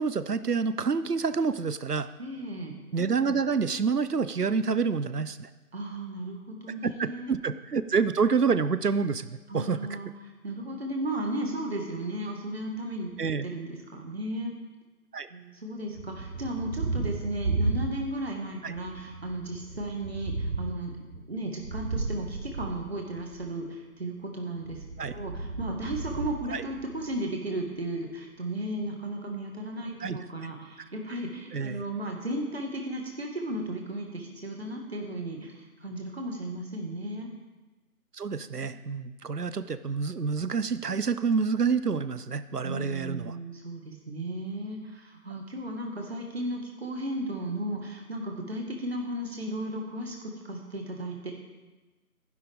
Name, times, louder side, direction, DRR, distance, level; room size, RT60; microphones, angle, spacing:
voice 1, 0.0-2.1 2.9-5.5 6.8-10.0 13.2-13.5 15.1-15.3 18.6-18.7 25.0-25.1 26.5-26.6 30.0-30.2 30.8-30.9 31.5-31.8 38.1-43.4, right 5 dB, 85° right, 14 dB, 0.8 m, -28 dB
voice 2, 2.2-2.7 5.7-7.3 9.5-10.1 10.4-13.1 13.4-14.5 15.3-20.9 21.3-24.8 25.1-35.5 35.8-37.3 42.6-51.3, right 1 dB, 40° right, 1 dB, 1.9 m, -35 dB
Thunder, 15.9-18.4 18.7-23.5 24.6-27.2, right 3 dB, 60° right, 1.2 m, -34 dB
15.0 x 11.0 x 3.6 m, 1.2 s
figure-of-eight pair, 160°, 46 cm